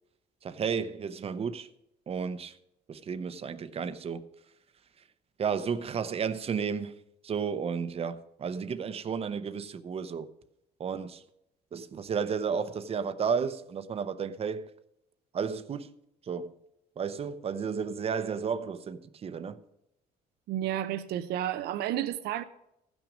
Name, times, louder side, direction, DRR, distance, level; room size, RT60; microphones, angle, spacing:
voice 1, 0.4-1.7 2.1-2.6 2.9-4.2 5.4-6.9 7.2-10.3 10.8-11.2 11.7-14.7 15.3-15.9 16.2-16.6 17.0-19.6, right 6 dB, 35° right, 0.7 m, -32 dB
voice 2, 20.5-22.4, right 12 dB, 70° right, 0.5 m, -31 dB
15.0 x 6.2 x 5.1 m
cardioid pair, 110°, 17 cm